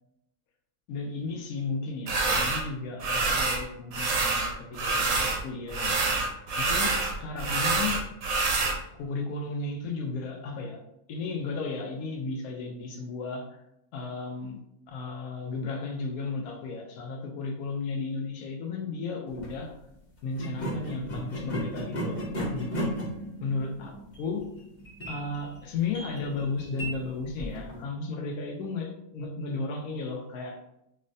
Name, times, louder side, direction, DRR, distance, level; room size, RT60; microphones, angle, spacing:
voice 1, 0.9-6.1 6.6-8.0 8.9-10.8 11.1-13.5 13.9-14.6 14.9-19.7 20.2-22.3 22.5-22.9 23.4-24.5 25.1-30.6, left 4 dB, 85° left, 2 dB, 1.1 m, -34 dB
sound 1, 2.1-2.6 3.0-3.6 3.9-5.4 5.7-8.8, right 3 dB, 75° right, 1.2 m, -26 dB
sound 2, 19.3-19.5 20.3-27.8, equal, 40° left, 0.8 m, -35 dB
5.4 x 2.1 x 2.6 m, 0.84 s
omnidirectional pair, 1.5 m